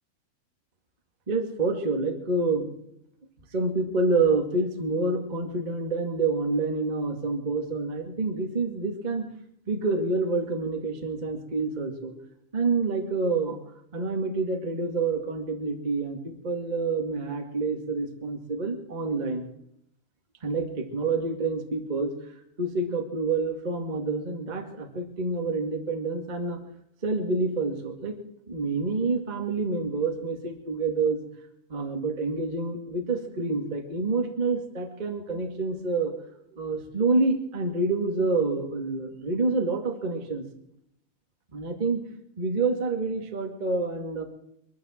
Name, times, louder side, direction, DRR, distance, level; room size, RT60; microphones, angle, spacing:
voice 1, 1.3-2.7 3.5-9.3 9.7-12.1 12.5-13.6 13.9-19.5 20.4-22.1 22.6-26.6 27.0-28.2 28.5-31.3 31.7-36.1 36.5-40.4 41.5-42.0 42.4-44.2, right 3 dB, 25° right, 2 dB, 0.8 m, -27 dB
22.0 x 14.0 x 4.5 m, 0.73 s
omnidirectional pair, 4.8 m